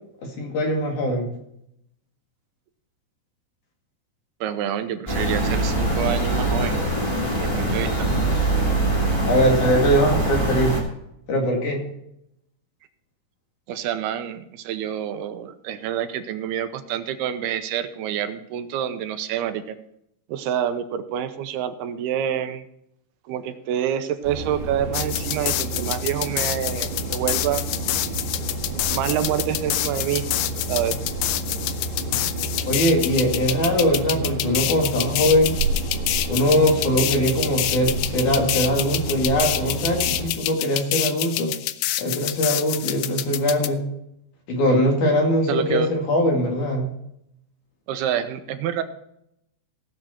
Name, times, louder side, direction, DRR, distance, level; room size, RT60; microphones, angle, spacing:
voice 1, 0.2-1.3 9.3-10.7 11.3-11.8 32.7-35.6 36.3-41.5 42.0-43.8 44.5-46.9, equal, 55° left, 1 dB, 3.6 m, -21 dB
voice 2, 4.4-6.8 7.4-8.1 13.7-19.6 20.3-22.7 23.3-27.6 28.9-30.3 30.7-31.0 45.5-45.9 47.9-48.8, right 10 dB, 85° right, 9 dB, 2.8 m, -27 dB
sound 1, 5.1-10.8, right 2 dB, 10° left, 2.0 m, -23 dB
sound 2, 24.2-40.3, right 2 dB, 55° right, 2.3 m, -30 dB
sound 3, 24.9-43.7, left 14 dB, 85° left, 1.9 m, -27 dB
17.5 x 7.6 x 4.4 m, 0.77 s
omnidirectional pair, 4.5 m